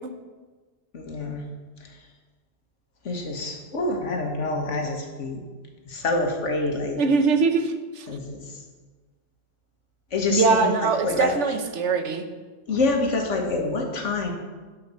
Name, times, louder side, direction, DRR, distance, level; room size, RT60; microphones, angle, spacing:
voice 1, 0.9-1.4 1.8-2.0 3.1-5.4 5.9-7.0 8.1-8.6 10.1-11.3 12.7-14.3, left 3 dB, 85° left, 3 dB, 1.7 m, -27 dB
voice 2, 7.0-8.1 10.3-12.2, right 4 dB, 75° right, 8 dB, 1.2 m, -22 dB
9.8 x 5.8 x 6.9 m, 1.4 s
omnidirectional pair, 1.2 m